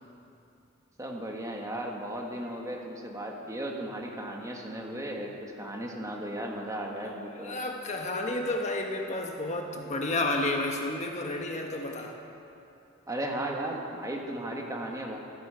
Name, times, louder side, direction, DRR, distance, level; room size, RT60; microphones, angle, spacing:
voice 1, 1.0-7.5 13.1-15.2, right 1 dB, 15° right, 0 dB, 1.6 m, -35 dB
voice 2, 7.0-12.2, left 2 dB, 35° left, 2 dB, 1.2 m, -31 dB
13.5 x 11.0 x 7.8 m, 2.8 s
head